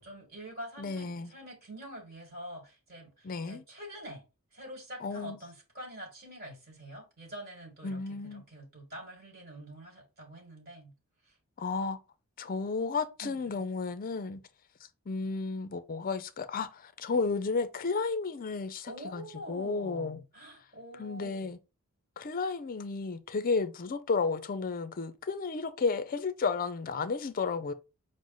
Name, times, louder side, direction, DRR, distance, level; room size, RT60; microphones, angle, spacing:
voice 1, 0.0-4.2 4.5-10.9 11.2-11.4 13.2-13.7 18.9-21.5, equal, 45° right, 1.5 m, -46 dB
voice 2, 0.8-1.3 3.2-3.6 5.0-5.4 7.8-8.5 11.6-12.0 12.4-14.4 15.1-20.2 21.0-21.6 22.2-27.7, left 4 dB, 40° left, 0.5 m, -32 dB
6.2 x 2.1 x 3.8 m
head